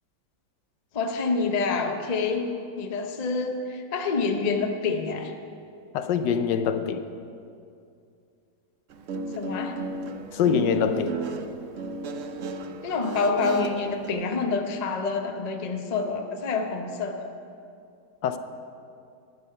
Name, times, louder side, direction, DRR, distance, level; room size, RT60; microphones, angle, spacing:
voice 1, 0.9-2.5 2.8-5.3 9.3-9.8 12.8-17.3, left 4 dB, 50° left, 4 dB, 0.5 m, -27 dB
voice 2, 5.9-7.0 10.3-11.2 18.2-18.4, left 7 dB, 80° left, 10 dB, 1.3 m, -24 dB
Guitar, 8.9-14.2, right 4 dB, 65° right, 0.7 m, -34 dB
11.5 x 9.3 x 5.5 m, 2.4 s
omnidirectional pair, 1.9 m